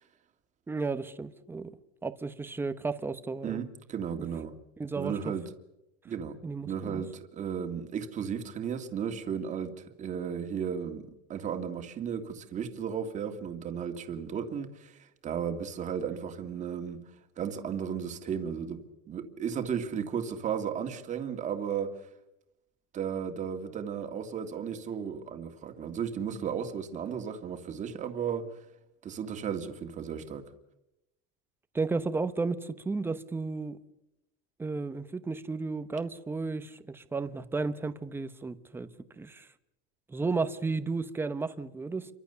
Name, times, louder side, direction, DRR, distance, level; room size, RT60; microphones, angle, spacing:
voice 1, 0.7-1.8 2.0-3.6 4.8-5.3 6.4-7.0 31.7-33.8 34.6-38.9 39.2-39.5 40.1-42.1, right 4 dB, 10° right, 0.9 m, -33 dB
voice 2, 3.4-4.5 5.0-5.4 6.0-6.4 6.7-17.0 17.4-21.9 22.9-28.5 29.0-30.4, right 7 dB, 25° right, 2.0 m, -34 dB
28.5 x 24.0 x 6.9 m
cardioid pair, 175°, 29 cm